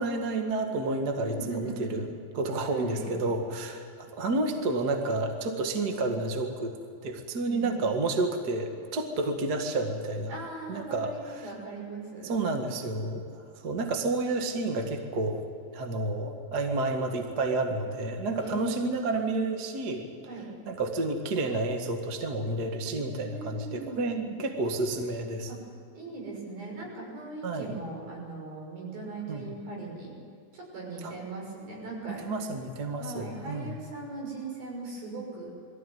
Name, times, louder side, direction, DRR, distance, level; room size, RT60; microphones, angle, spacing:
voice 1, 0.0-2.1 2.3-6.8 7.0-10.4 10.7-11.4 12.2-15.4 15.7-20.0 20.7-25.5 27.4-27.7 29.3-29.5 31.0-31.1 32.1-33.8, right 2 dB, 35° right, 4 dB, 1.7 m, -30 dB
voice 2, 1.2-2.1 2.7-3.2 7.4-7.7 10.3-12.3 18.4-19.2 20.3-20.5 23.3-24.3 25.5-25.6 25.9-30.1 30.5-32.2 33.0-35.5, right 3 dB, 75° right, -2 dB, 8.0 m, -39 dB
22.0 x 15.0 x 9.4 m, 2.4 s
omnidirectional pair, 4.2 m